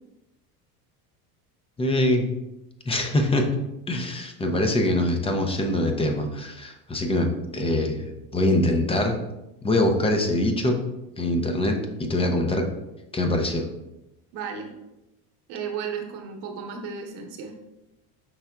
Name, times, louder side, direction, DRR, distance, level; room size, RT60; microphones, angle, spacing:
voice 1, 1.8-2.3 2.9-3.5 3.9-9.2 9.6-10.8 11.2-12.7 13.1-13.7, left 1 dB, 15° left, 4 dB, 0.5 m, -24 dB
voice 2, 14.3-14.7 15.5-17.5, right 6 dB, 65° right, 1 dB, 1.0 m, -34 dB
5.6 x 3.5 x 2.2 m, 0.94 s
supercardioid pair, 110°, 45 cm